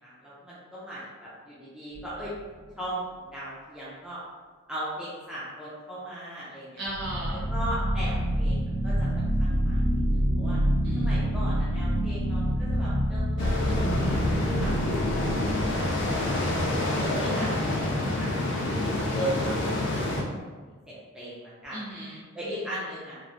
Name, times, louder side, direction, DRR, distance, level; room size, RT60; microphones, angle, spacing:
voice 1, 0.0-2.3 2.8-4.2 4.7-6.9 7.5-9.8 10.1-10.6 11.0-16.5 16.9-17.8 18.2-18.7 19.1-20.3 20.9-21.8 22.3-23.1, right 1 dB, 5° right, -10 dB, 0.5 m, -38 dB
sound 1, 1.9-2.5 6.8-17.0, equal, 70° right, 0.7 m, -27 dB
voice 2, 6.8-7.4 10.8-11.2 21.7-22.8, right 1 dB, 50° right, -7 dB, 1.0 m, -38 dB
sound 2, 13.4-20.2, left 2 dB, 50° left, 0.4 m, -27 dB
3.1 x 2.6 x 2.6 m, 1.5 s
head